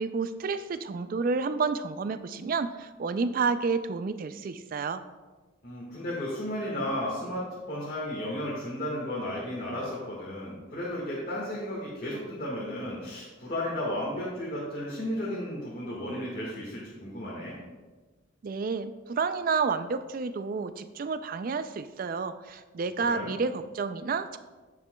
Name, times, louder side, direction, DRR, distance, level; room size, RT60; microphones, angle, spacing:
voice 1, 0.0-5.0 18.4-24.4, right 4 dB, 40° right, 12 dB, 0.3 m, -30 dB
voice 2, 5.6-17.6 23.0-23.4, left 1 dB, 40° left, -6 dB, 1.6 m, -34 dB
9.8 x 7.3 x 2.2 m, 1.3 s
head